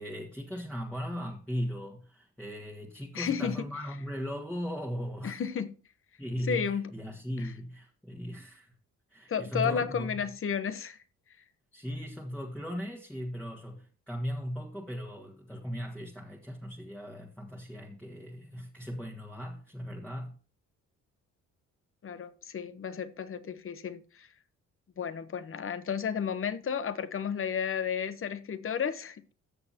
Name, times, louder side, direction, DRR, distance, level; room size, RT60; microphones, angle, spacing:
voice 1, 0.0-5.4 6.2-8.7 9.1-10.1 11.7-20.4, equal, 5° left, 1.7 m, -38 dB
voice 2, 3.1-3.7 5.2-5.7 6.5-6.9 7.4-7.5 9.3-11.0 22.0-24.3 25.0-29.3, left 7 dB, 45° left, 1.1 m, -32 dB
14.5 x 6.7 x 2.9 m
cardioid pair, 90°, 30 cm